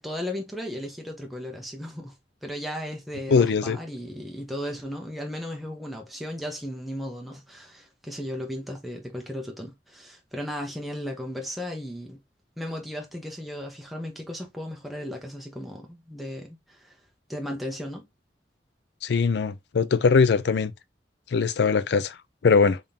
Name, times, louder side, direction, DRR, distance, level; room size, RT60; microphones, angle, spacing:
voice 1, 0.0-2.1 2.4-12.2 12.6-17.0 17.3-18.0, equal, ahead, 0.7 m, -35 dB
voice 2, 3.3-3.8 19.0-20.7 21.3-22.2 22.4-22.8, left 5 dB, 65° left, 0.4 m, -21 dB
3.6 x 3.5 x 2.7 m
head